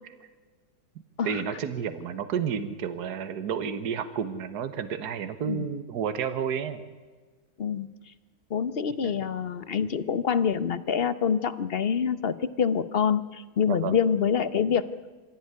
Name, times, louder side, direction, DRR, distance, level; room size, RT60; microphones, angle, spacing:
voice 1, 1.2-6.8 9.0-9.2 13.7-14.0, right 7 dB, 70° right, 11 dB, 1.7 m, -31 dB
voice 2, 8.5-14.9, left 7 dB, 45° left, 14 dB, 1.0 m, -26 dB
24.5 x 16.5 x 9.6 m, 1.4 s
omnidirectional pair, 1.8 m